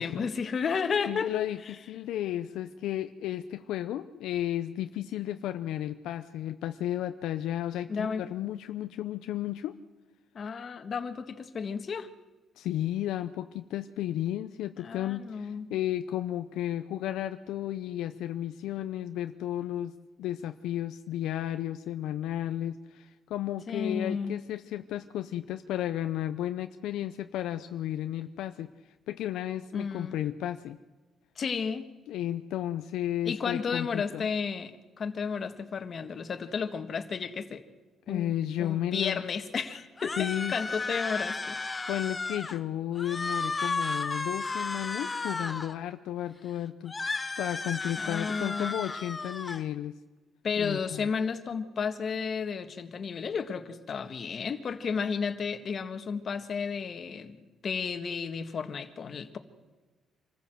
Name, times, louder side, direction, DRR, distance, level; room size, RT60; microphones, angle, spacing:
voice 1, 0.0-1.4 7.9-8.2 10.4-12.1 14.8-15.7 23.7-24.4 29.7-30.2 31.4-31.9 33.3-37.6 38.1-38.3 38.6-41.6 48.0-48.7 50.4-59.4, left 6 dB, 50° left, 8 dB, 1.6 m, -33 dB
voice 2, 1.1-9.8 12.6-19.9 20.2-28.7 29.1-30.8 32.1-34.3 38.1-39.2 40.2-40.6 41.9-46.9 47.4-50.0 50.6-51.1, left 12 dB, 85° left, 9 dB, 0.6 m, -33 dB
sound 1, 40.0-42.6 43.0-45.8 46.9-49.6, left 3 dB, 25° left, 1.0 m, -34 dB
25.5 x 15.0 x 7.7 m, 1.2 s
cardioid pair, 90°, 0 cm